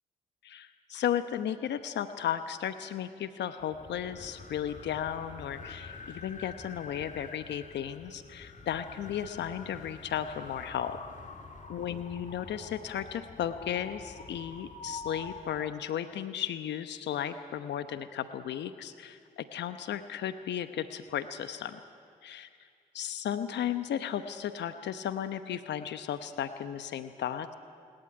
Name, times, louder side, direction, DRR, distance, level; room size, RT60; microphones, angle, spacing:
voice 1, 0.4-11.0 11.7-21.8 22.3-22.4 22.9-27.5, left 9 dB, 70° left, 10 dB, 1.0 m, -35 dB
sound 1, 3.6-15.7, left 3 dB, 45° left, 2.9 m, -46 dB
27.5 x 12.0 x 9.9 m, 2.2 s
hypercardioid pair, 45°, 19 cm